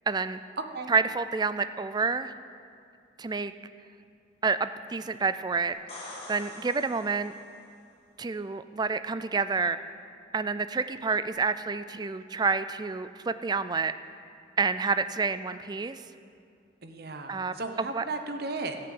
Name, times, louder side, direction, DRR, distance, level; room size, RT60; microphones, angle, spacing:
voice 1, 0.1-0.4 0.9-2.3 3.2-3.5 4.4-7.3 8.2-9.8 10.3-13.9 14.6-16.0 17.3-18.0, right 4 dB, 20° right, 12 dB, 0.3 m, -29 dB
sound 1, 5.7-7.6 11.3-11.4, left 2 dB, 30° left, 2.2 m, -45 dB
voice 2, 16.8-18.8, right 3 dB, 55° right, 6 dB, 0.9 m, -35 dB
15.5 x 6.7 x 7.8 m, 2.3 s
head